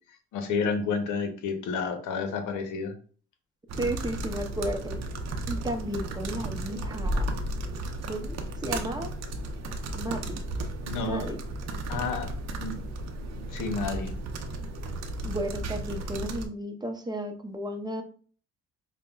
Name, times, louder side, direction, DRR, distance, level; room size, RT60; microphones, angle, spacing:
voice 1, 0.3-2.9 10.9-11.3 11.9-12.3 12.6-12.8 13.3-14.1, left 4 dB, 85° left, 6 dB, 0.7 m, -30 dB
sound 1, 3.7-16.5, right 1 dB, 60° right, 0.6 m, -34 dB
voice 2, 3.8-5.0 5.5-7.3 8.1-8.4 8.6-9.1 9.9-10.4 11.0-11.4 15.2-18.0, right 1 dB, 15° right, 5 dB, 0.6 m, -33 dB
5.2 x 2.1 x 2.3 m, 0.42 s
cardioid pair, 90°, 30 cm